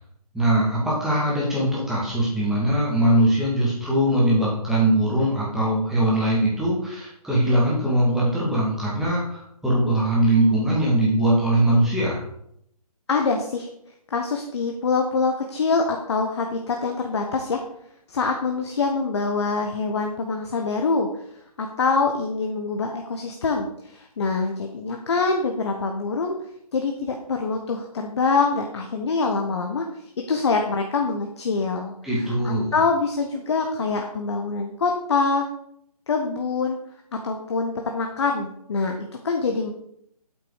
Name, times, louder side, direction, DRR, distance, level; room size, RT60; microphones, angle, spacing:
voice 1, 0.3-12.2 32.0-32.7, right 1 dB, ahead, -7 dB, 2.0 m, -21 dB
voice 2, 13.1-13.7 14.1-17.6 18.1-21.1 21.6-26.3 26.7-35.4 36.1-36.8 37.2-39.7, left 4 dB, 45° left, 3 dB, 1.0 m, -25 dB
8.4 x 6.0 x 4.8 m, 0.72 s
figure-of-eight pair, 145°, 20 cm